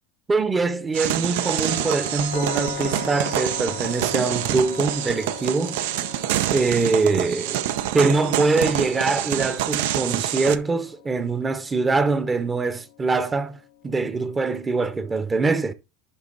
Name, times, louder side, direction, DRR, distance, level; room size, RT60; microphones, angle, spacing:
voice 1, 0.3-5.8 6.5-7.6 7.9-15.7, right 3 dB, 15° right, 0.7 m, -23 dB
sound 1, 0.9-10.6, right 12 dB, 80° right, 0.6 m, -26 dB
sound 2, 1.3-15.2, left 13 dB, 90° left, 1.1 m, -41 dB
11.0 x 3.9 x 3.9 m
supercardioid pair, 145°, 0 cm